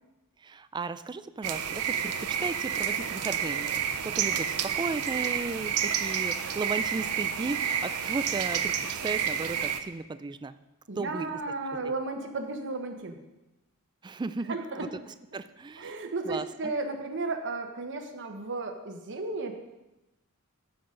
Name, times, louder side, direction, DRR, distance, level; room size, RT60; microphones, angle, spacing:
voice 1, 0.4-10.6 11.0-11.4 14.0-16.0 16.2-16.7, right 3 dB, 20° right, 13 dB, 0.3 m, -35 dB
sound 1, 1.4-9.8, right 8 dB, 90° right, 0.7 m, -30 dB
voice 2, 10.9-13.2 14.5-14.9 15.8-19.5, right 3 dB, 55° right, 5 dB, 1.1 m, -34 dB
15.0 x 5.9 x 3.8 m, 0.99 s
head